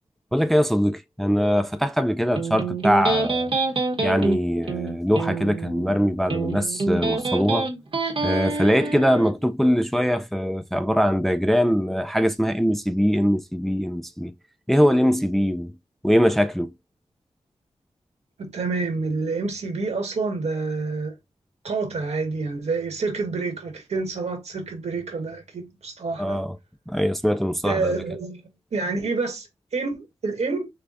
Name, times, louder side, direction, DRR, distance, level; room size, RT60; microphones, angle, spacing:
voice 1, 0.3-3.5 4.0-7.7 8.2-14.3 14.7-15.8 16.0-16.7 26.2-26.6 26.9-27.9, equal, ahead, 0.4 m, -22 dB
Electric guitar, 2.4-9.3, right 3 dB, 55° right, 1.1 m, -26 dB
voice 2, 18.4-21.1 21.6-26.4 27.6-28.4 28.7-30.7, right 3 dB, 80° right, 1.6 m, -28 dB
6.6 x 2.3 x 2.5 m
wide cardioid pair, 80°, 11 cm